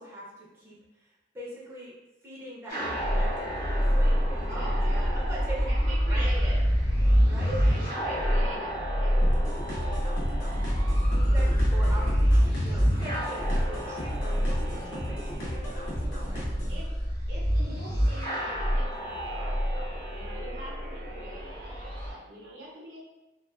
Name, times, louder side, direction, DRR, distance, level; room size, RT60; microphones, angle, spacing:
voice 1, 0.0-1.9 2.2-5.7 6.0-6.5 7.2-7.6 11.1-14.6 14.9-16.5, right 1 dB, 15° right, -6 dB, 0.6 m, -42 dB
sound 1, 2.7-22.1, equal, 25° left, 1.2 m, -26 dB
voice 2, 4.5-5.2 5.7-6.6 7.6-9.2 9.8-10.0 10.8-12.1 14.6-14.9 16.7-17.0 17.3-23.0, right 1 dB, 75° right, -6 dB, 0.6 m, -44 dB
sound 2, 9.2-16.8, equal, 45° left, 0.6 m, -36 dB
2.4 x 2.2 x 2.3 m, 1.1 s
head